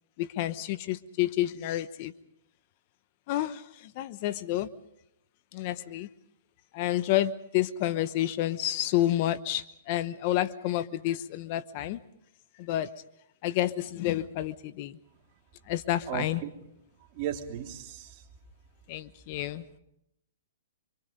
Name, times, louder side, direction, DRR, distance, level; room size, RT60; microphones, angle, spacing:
voice 1, 0.2-2.1 3.3-4.7 5.5-6.1 6.7-12.0 12.6-12.9 13.4-15.0 15.7-16.4 18.9-19.6, left 14 dB, 40° left, 13 dB, 0.9 m, -29 dB
voice 2, 16.1-16.5 17.1-18.2, right 10 dB, 35° right, 2 dB, 3.2 m, -35 dB
26.0 x 25.5 x 5.3 m, 0.79 s
hypercardioid pair, 150°, 0 cm